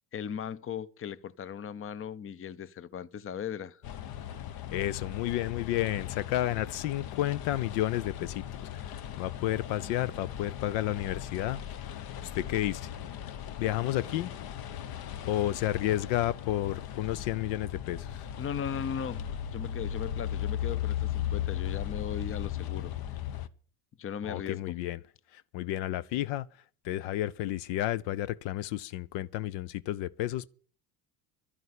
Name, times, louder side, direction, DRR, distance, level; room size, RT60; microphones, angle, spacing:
voice 1, 0.1-3.8 18.4-19.3 19.5-22.9 24.0-24.8, left 8 dB, 30° left, 0.8 m, -37 dB
sound 1, 3.8-23.5, left 11 dB, 50° left, 1.0 m, -37 dB
voice 2, 4.7-11.6 11.9-12.1 12.3-12.9 13.6-14.3 15.2-18.3 24.2-25.0 25.3-26.5 26.8-30.5, left 13 dB, 65° left, 0.7 m, -31 dB
11.5 x 9.0 x 8.4 m
supercardioid pair, 85°, 46 cm